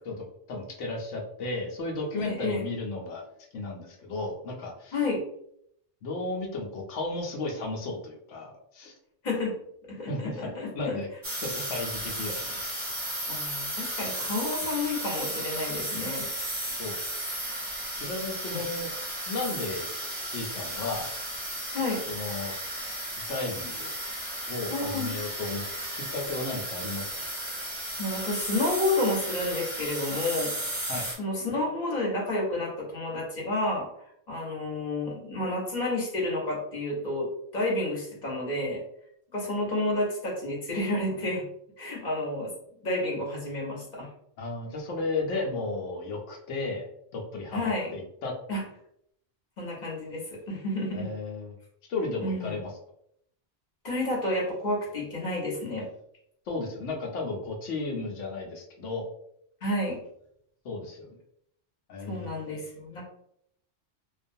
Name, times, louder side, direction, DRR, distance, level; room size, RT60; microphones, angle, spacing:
voice 1, 0.5-3.3 3.5-5.0 6.0-9.0 10.1-11.1 11.4-12.6 16.8-16.9 18.0-18.9 19.2-19.9 20.3-21.1 22.1-22.5 23.3-23.9 24.5-25.6 25.9-27.3 30.9-31.1 44.4-48.3 50.9-51.6 51.9-52.7 56.5-59.1 60.6-61.2 61.9-62.3, left 3 dB, 80° left, 1 dB, 1.0 m, -34 dB
voice 2, 2.2-2.6 4.9-5.2 9.2-9.5 9.9-11.0 13.3-16.3 18.5-18.6 21.7-22.0 24.7-25.1 28.0-30.8 31.2-33.8 34.3-37.3 37.5-38.8 39.3-41.4 41.8-42.5 42.8-44.1 47.5-47.9 48.5-48.6 49.6-51.1 52.2-52.6 53.8-55.9 59.6-60.0 62.1-63.0, left 2 dB, 40° left, -3 dB, 0.9 m, -30 dB
sound 1, 11.2-31.1, right 1 dB, 25° right, 0.7 m, -34 dB
2.4 x 2.2 x 2.6 m, 0.71 s
omnidirectional pair, 1.2 m